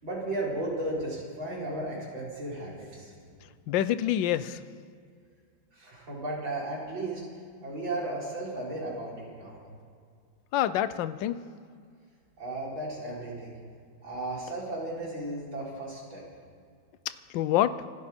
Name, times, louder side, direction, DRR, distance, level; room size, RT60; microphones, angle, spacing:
voice 1, 0.0-3.1 5.7-7.3 7.6-9.6 12.4-13.6 14.0-16.2, right 2 dB, 75° right, -5 dB, 5.3 m, -35 dB
voice 2, 3.7-4.6 10.5-11.4 17.3-17.8, left 12 dB, 75° left, 14 dB, 1.3 m, -26 dB
26.5 x 12.0 x 4.4 m, 2.2 s
omnidirectional pair, 2.1 m